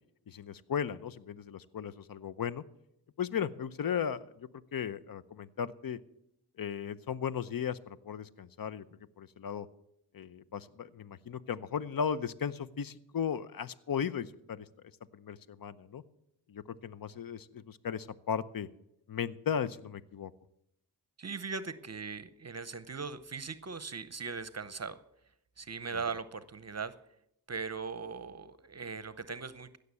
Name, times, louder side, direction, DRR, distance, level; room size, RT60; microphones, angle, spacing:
voice 1, 0.3-2.6 3.2-6.0 6.6-8.8 9.2-9.7 10.1-14.7 15.1-16.0 16.5-18.7 19.1-20.3 25.9-26.0, left 7 dB, 60° left, 15 dB, 0.7 m, -36 dB
voice 2, 21.2-25.0 25.6-26.9 27.5-29.8, right 5 dB, 40° right, 14 dB, 0.8 m, -39 dB
16.5 x 6.7 x 8.3 m, 0.80 s
cardioid pair, 50°, 39 cm